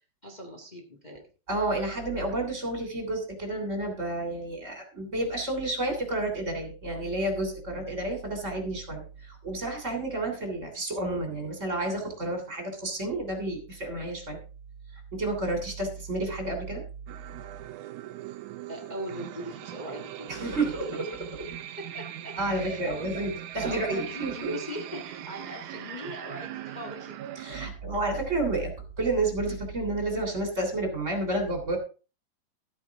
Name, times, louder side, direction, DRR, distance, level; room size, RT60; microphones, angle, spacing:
voice 1, 0.2-1.2 7.7-7.8 18.7-21.0 21.8-23.2 23.6-27.2 27.6-28.0, equal, 65° left, 1 dB, 0.4 m, -41 dB
voice 2, 1.5-14.4 15.1-16.8 20.3-21.0 21.3-21.4 22.4-24.5 27.4-31.8, right 2 dB, 20° right, 3 dB, 2.9 m, -30 dB
sound 1, 17.1-27.7, right 12 dB, 75° right, 1.9 m, -40 dB
14.0 x 9.3 x 3.6 m, 0.34 s
omnidirectional pair, 4.3 m